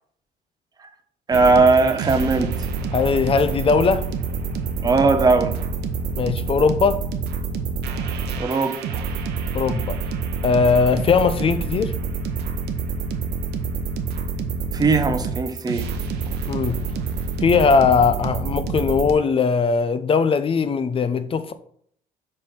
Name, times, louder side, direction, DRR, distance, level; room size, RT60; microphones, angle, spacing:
voice 1, 1.3-2.5 4.8-5.6 8.4-9.0 14.7-15.9, right 3 dB, 25° right, 0.8 m, -19 dB
sound 1, 1.3-19.1, right 4 dB, 80° right, 0.9 m, -27 dB
voice 2, 2.9-4.1 6.2-7.0 9.5-10.0 10.4-11.9 16.5-16.8 17.4-21.5, left 5 dB, 35° left, 0.6 m, -19 dB
5.0 x 4.3 x 5.6 m
cardioid pair, 110°, 17 cm